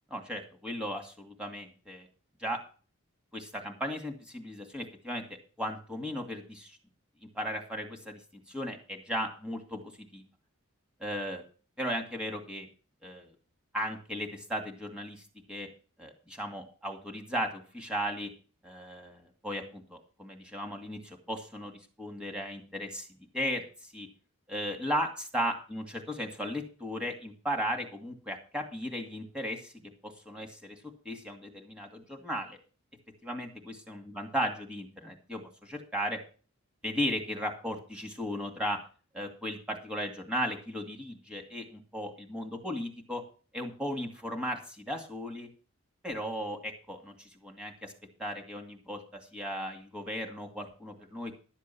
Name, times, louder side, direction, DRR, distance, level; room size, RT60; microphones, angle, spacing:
voice 1, 0.1-2.1 2.4-2.6 3.3-5.2 5.6-6.8 7.3-9.8 10.1-10.2 11.0-11.4 11.8-12.7 13.0-13.3 13.7-15.7 16.0-18.3 18.6-23.1 23.3-24.1 24.5-29.7 30.0-30.8 31.0-32.6 33.2-36.2 36.8-38.8 39.1-43.2 43.5-45.5 46.0-47.9 48.2-51.3, equal, 5° right, 3 dB, 2.3 m, -36 dB
12.0 x 7.4 x 5.9 m, 0.37 s
head